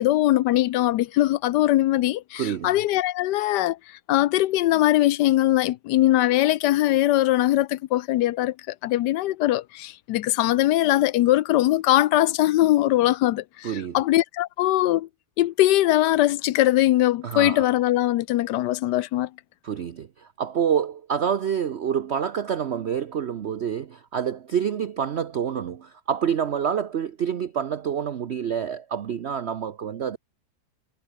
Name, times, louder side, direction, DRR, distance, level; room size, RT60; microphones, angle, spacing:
voice 1, 0.0-3.8 4.1-15.1 15.4-19.3, left 15 dB, 90° left, 1.2 m, -21 dB
voice 2, 2.4-2.8 13.6-14.0 17.2-17.7 19.6-30.2, right 8 dB, 50° right, 0.9 m, -27 dB
omnidirectional pair, 1.8 m